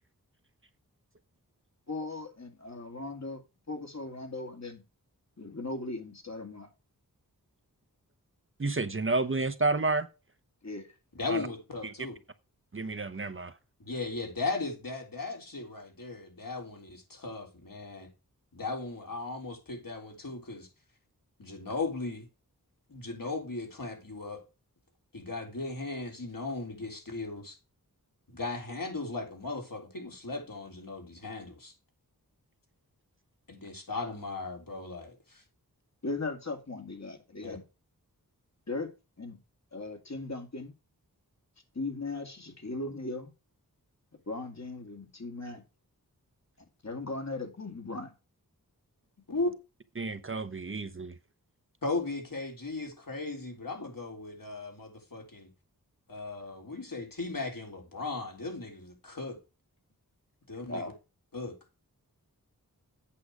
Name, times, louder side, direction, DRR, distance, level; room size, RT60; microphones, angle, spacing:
voice 1, 1.9-3.4 3.7-4.8 5.4-6.7 10.6-10.9 36.0-37.6 38.7-38.9 39.2-39.4 39.7-40.7 41.7-43.3 44.3-45.6 46.8-48.1 60.7-60.9, left 2 dB, 45° left, 2.3 m, -38 dB
voice 2, 8.6-10.1 11.3-11.5 11.8-11.9 12.7-13.6 50.0-51.1, right 3 dB, 35° right, 0.9 m, -30 dB
voice 3, 11.1-12.1 13.8-18.1 18.5-20.7 21.4-22.3 22.9-24.4 25.1-27.6 28.3-31.7 33.5-35.4 37.4-37.6 49.3-49.5 51.8-55.5 56.1-59.4 60.5-60.9 61.3-61.6, left 3 dB, 65° left, 3.8 m, -37 dB
8.6 x 6.6 x 4.9 m
wide cardioid pair, 55°, 36 cm